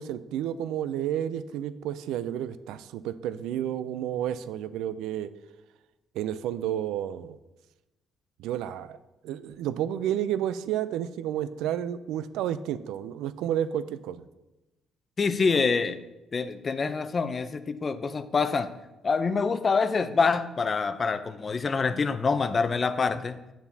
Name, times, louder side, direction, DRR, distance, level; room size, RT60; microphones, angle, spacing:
voice 1, 0.0-5.3 6.1-7.4 8.4-9.0 9.2-14.2, right 11 dB, 85° right, 14 dB, 0.3 m, -31 dB
voice 2, 15.2-16.0 16.3-18.7 19.0-23.4, left 4 dB, 40° left, 11 dB, 0.5 m, -26 dB
9.0 x 6.9 x 2.7 m, 1.0 s
cardioid pair, 80°, 0 cm